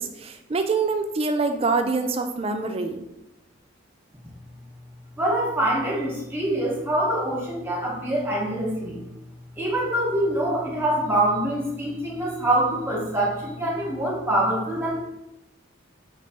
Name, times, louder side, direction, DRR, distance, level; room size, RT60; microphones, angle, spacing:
voice 1, 0.0-3.1, right 4 dB, 30° right, 7 dB, 0.3 m, -25 dB
voice 2, 5.2-9.0 9.6-15.0, right 1 dB, 10° right, -3 dB, 0.9 m, -25 dB
5.1 x 3.2 x 2.8 m, 0.92 s
head